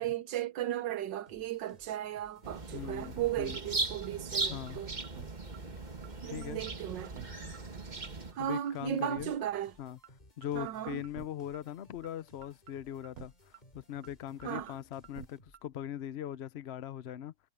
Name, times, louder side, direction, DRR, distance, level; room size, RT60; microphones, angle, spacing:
voice 1, 0.0-4.9 6.2-7.1 8.3-9.7 10.5-11.0 14.4-14.8, right 11 dB, 75° right, 1.6 m, -36 dB
sound 1, 1.3-15.8, left 1 dB, 20° left, 3.9 m, -61 dB
sound 2, 2.4-8.3, right 3 dB, 25° right, 1.6 m, -38 dB
voice 2, 2.7-3.6 4.5-4.8 6.3-6.6 8.4-9.3 9.8-10.0 10.4-17.3, left 11 dB, 75° left, 0.5 m, -41 dB
sound 3, 3.0-3.3 3.5-3.6 4.0-4.1 4.4-4.7 5.0-5.3 5.5-5.6 6.0-6.1 6.4-6.7 7.0-7.3 7.5-7.6 8.0-8.1 8.4-8.7 9.0-9.3 9.5-9.6 10.0-10.1 10.4-10.7 11.0-11.3 11.5-11.6 12.0-12.1 12.4-12.7 13.0-13.3 13.5-13.6 14.0-14.1 14.4-14.7 15.0-15.3 15.5-15.6, right 9 dB, 55° right, 1.4 m, -49 dB
omnidirectional pair, 2.0 m